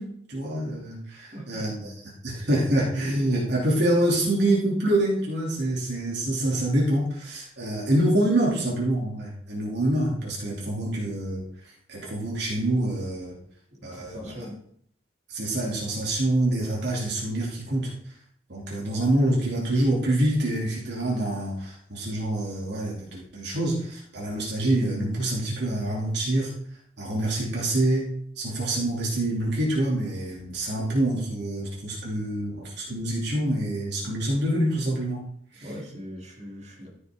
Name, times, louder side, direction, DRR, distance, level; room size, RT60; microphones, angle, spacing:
voice 1, 0.0-1.9 2.2-11.4 11.9-13.4 13.8-14.2 15.3-17.9 18.5-26.5 27.0-28.1 28.4-35.2 35.5-35.7, right 1 dB, 65° right, -4 dB, 2.6 m, -26 dB
voice 2, 1.1-1.8 13.7-14.6 35.5-36.9, equal, 40° right, -3 dB, 2.9 m, -41 dB
13.0 x 6.4 x 3.6 m, 0.64 s
head